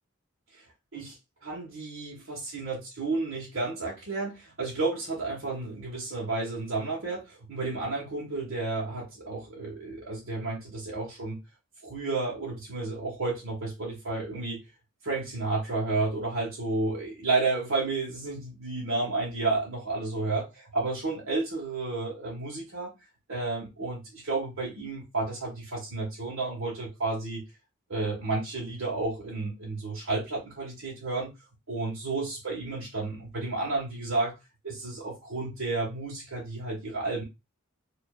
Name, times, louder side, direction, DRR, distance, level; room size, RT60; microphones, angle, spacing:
voice 1, 1.4-11.4 11.8-14.6 15.0-20.5 20.7-22.9 23.3-27.4 27.9-31.3 31.7-34.3 34.6-37.2, right 3 dB, 70° right, 1.7 m, -31 dB
5.1 x 3.1 x 2.5 m
head